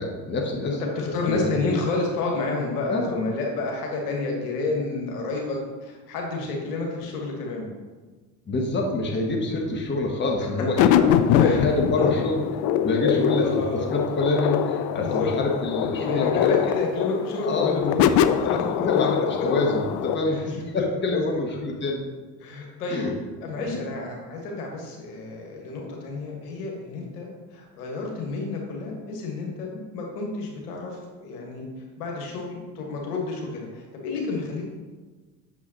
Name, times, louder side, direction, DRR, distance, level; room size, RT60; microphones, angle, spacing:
voice 1, 0.0-1.5 2.9-3.1 8.5-10.9 11.4-12.4 12.8-16.7 17.4-17.9 18.4-22.0 22.9-23.1 23.6-23.8, left 2 dB, 20° left, 1 dB, 1.2 m, -26 dB
voice 2, 0.6-7.7 10.4-10.5 10.9-11.0 11.4-12.1 13.4-13.9 15.0-15.6 15.9-18.5 18.8-18.9 20.3-20.4 21.1-21.2 21.5-21.6 22.4-23.0 23.4-31.6 32.0-34.7, left 3 dB, 65° left, 0 dB, 1.7 m, -30 dB
sound 1, 10.8-20.2, left 9 dB, 40° left, 0.4 m, -23 dB
8.2 x 6.8 x 3.0 m, 1.3 s
figure-of-eight pair, 55°, 49 cm